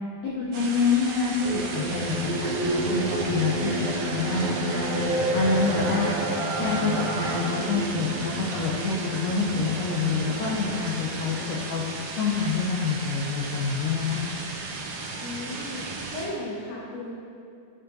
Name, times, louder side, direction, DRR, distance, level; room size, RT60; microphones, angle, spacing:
voice 1, 0.2-4.9 5.3-6.1 6.6-11.8 12.2-14.2, left 4 dB, 80° left, -4 dB, 1.5 m, -27 dB
sound 1, 0.5-16.3, right 3 dB, 85° right, 1.3 m, -36 dB
sound 2, 1.4-11.9, right 1 dB, 70° right, 1.6 m, -30 dB
Bowed string instrument, 9.1-13.8, left 2 dB, 45° left, 1.6 m, -47 dB
voice 2, 15.2-17.1, left 1 dB, 60° left, -7 dB, 0.7 m, -35 dB
6.7 x 3.8 x 3.9 m, 2.5 s
omnidirectional pair, 3.6 m